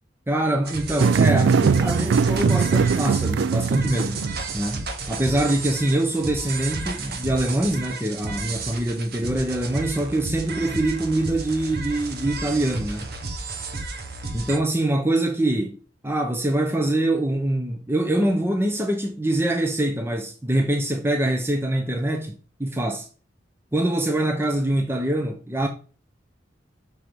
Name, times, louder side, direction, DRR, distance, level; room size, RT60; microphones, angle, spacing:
voice 1, 0.3-4.3 4.5-13.1 14.3-15.8 16.0-23.1 23.7-25.7, right 1 dB, 15° right, 0.8 m, -24 dB
sound 1, 0.7-14.6, right 3 dB, 55° right, 1.1 m, -33 dB
sound 2, 1.0-4.5, right 5 dB, 80° right, 0.4 m, -20 dB
6.2 x 4.7 x 5.2 m
head